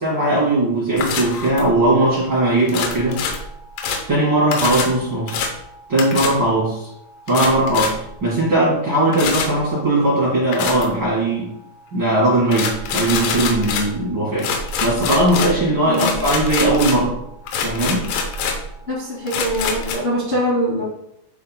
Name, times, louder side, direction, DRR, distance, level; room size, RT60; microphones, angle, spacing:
voice 1, 0.0-3.2 4.1-5.4 5.9-6.9 7.3-11.5 11.9-14.5 14.8-17.2 17.6-18.1, right 1 dB, 50° right, -9 dB, 1.4 m, -19 dB
sound 1, 1.0-1.8 2.7-4.1 4.5-5.0 5.3-5.5 6.0-6.4 7.3-8.1 9.1-9.6 10.5-11.0 12.5-14.0 14.4-17.2 17.5-18.7 19.3-20.0, left 5 dB, 85° left, 3.4 m, -25 dB
voice 2, 15.8-16.2 18.9-20.8, equal, 50° left, -9 dB, 0.8 m, -23 dB
11.0 x 3.8 x 2.2 m, 0.78 s
omnidirectional pair, 5.7 m